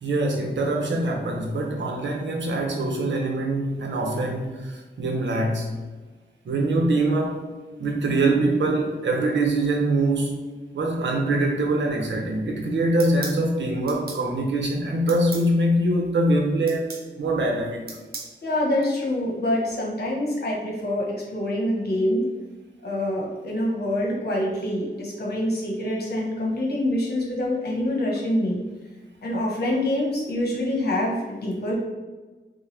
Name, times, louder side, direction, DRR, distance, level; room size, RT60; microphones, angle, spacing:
voice 1, 0.0-5.7 6.4-7.5 7.8-10.4 10.7-16.9 17.2-17.9, right 2 dB, 85° right, 1 dB, 0.9 m, -23 dB
sound 1, 13.0-13.4 13.9-14.2 15.1-15.5 16.7-17.1 17.9-18.3, right 3 dB, 55° right, 0.9 m, -36 dB
voice 2, 18.4-22.2 22.8-28.6 29.2-31.7, left 1 dB, 60° left, -2 dB, 1.3 m, -25 dB
5.9 x 2.4 x 3.4 m, 1.3 s
wide cardioid pair, 120°, 18 cm